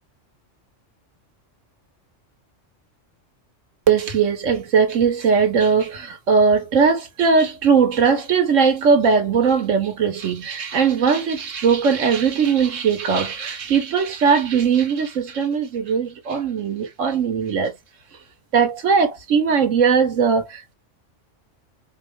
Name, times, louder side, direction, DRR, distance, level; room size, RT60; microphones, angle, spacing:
voice 1, 3.9-17.7 18.5-20.7, right 6 dB, 85° right, 1.4 m, -19 dB
4.3 x 2.5 x 3.1 m
omnidirectional pair, 1.3 m